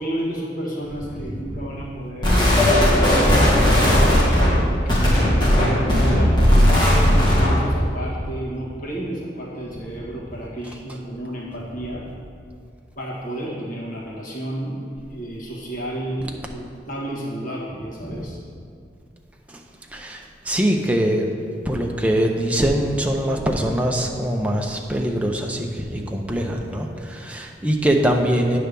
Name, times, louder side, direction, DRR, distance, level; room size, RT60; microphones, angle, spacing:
voice 1, 0.0-2.6 2.9-12.0 12.9-14.8 15.1-18.4, right 1 dB, 45° left, -6 dB, 1.7 m, -31 dB
voice 2, 1.2-1.8 9.9-10.0 18.0-18.3 19.5-19.6 19.9-21.3 21.6-28.6, right 1 dB, 10° right, 1 dB, 0.6 m, -23 dB
sound 1, 2.2-7.7, equal, 25° left, 1.6 m, -16 dB
9.4 x 3.4 x 6.7 m, 2.3 s
head